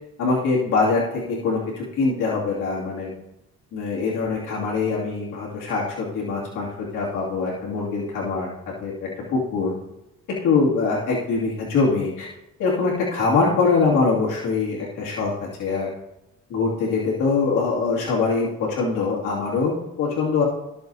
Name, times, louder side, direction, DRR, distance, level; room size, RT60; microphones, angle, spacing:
voice 1, 0.2-1.0 1.3-3.1 3.7-8.5 8.8-9.7 10.4-12.3 12.6-15.3 15.6-15.9 16.5-20.4, left 4 dB, 85° left, -5 dB, 2.6 m, -23 dB
15.5 x 7.0 x 2.7 m, 0.91 s
cardioid pair, 90°, 30 cm